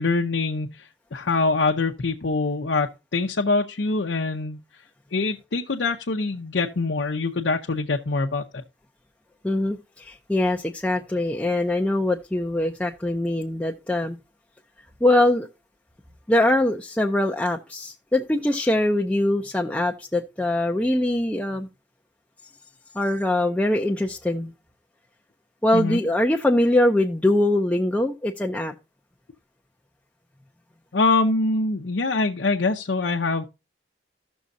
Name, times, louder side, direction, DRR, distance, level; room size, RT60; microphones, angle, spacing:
voice 1, 0.0-4.6 5.1-8.4 25.7-26.0 30.9-33.4, left 3 dB, 80° left, 0.7 m, -24 dB
voice 2, 9.4-14.2 15.0-15.5 16.3-21.7 22.9-24.5 25.6-28.7, left 1 dB, 5° left, 0.5 m, -22 dB
15.0 x 6.2 x 2.6 m
head